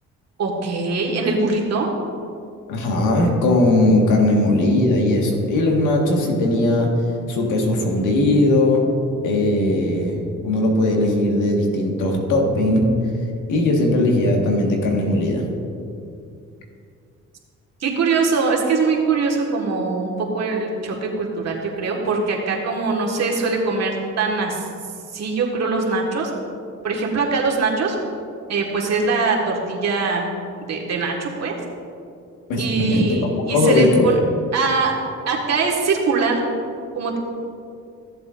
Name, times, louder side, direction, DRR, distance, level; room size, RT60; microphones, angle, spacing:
voice 1, 0.4-1.9 17.8-24.6 25.1-26.3 26.8-28.0 28.5-30.2 30.7-31.5 32.6-34.1 34.5-34.9 35.3-36.4 36.9-37.2, right 4 dB, 60° right, -1 dB, 1.7 m, -22 dB
voice 2, 2.7-6.9 7.3-8.8 9.2-12.9 13.5-15.4 32.5-33.1 33.5-34.1, left 1 dB, 85° left, 1 dB, 1.7 m, -18 dB
15.0 x 7.7 x 2.6 m, 2.4 s
cardioid pair, 90°, 30 cm